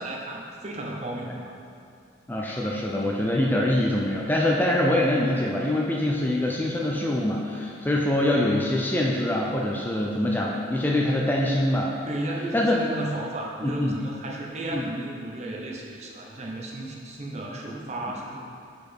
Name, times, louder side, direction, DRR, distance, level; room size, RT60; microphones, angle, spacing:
voice 1, 0.0-1.5 12.1-18.4, right 1 dB, 35° right, -1 dB, 0.7 m, -34 dB
voice 2, 2.3-11.9 12.5-12.8 13.6-14.0 14.7-14.9, left 1 dB, 10° left, -2 dB, 0.3 m, -24 dB
4.8 x 4.7 x 4.4 m, 2.4 s
head